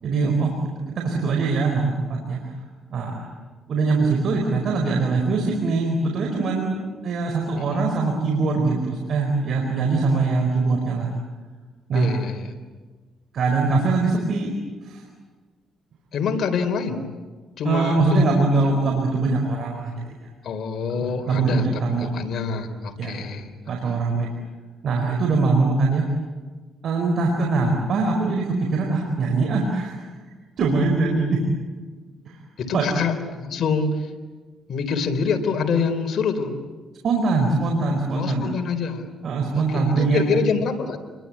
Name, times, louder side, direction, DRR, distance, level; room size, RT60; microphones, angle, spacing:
voice 1, 0.0-2.5 2.9-3.3 3.7-11.1 11.9-12.1 13.3-14.5 14.8-15.0 17.6-20.1 20.9-22.1 23.0-23.2 23.7-24.3 24.8-26.0 26.8-30.0 30.6-31.4 32.2-32.4 32.7-32.9 37.0-38.5 39.2-40.4, right 3 dB, 60° right, 2 dB, 4.6 m, -22 dB
voice 2, 11.9-12.5 16.1-17.0 17.6-18.6 20.4-23.5 32.6-34.1 34.7-36.5 38.1-39.1 39.7-41.0, left 5 dB, 60° left, 5 dB, 4.0 m, -26 dB
29.5 x 22.5 x 8.6 m, 1.4 s
cardioid pair, 90°, 0 cm